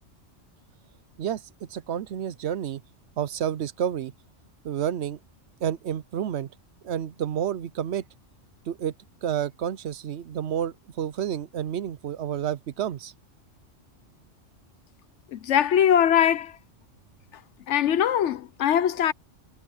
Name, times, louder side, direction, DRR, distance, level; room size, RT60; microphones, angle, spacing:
voice 1, 1.2-2.8 3.2-4.1 4.6-5.2 5.6-6.5 6.8-8.0 8.7-8.9 9.2-13.1, right 9 dB, 65° right, 0.9 m, -30 dB
voice 2, 15.3-16.6 17.7-19.1, left 9 dB, 75° left, 1.0 m, -21 dB
omnidirectional pair, 1.2 m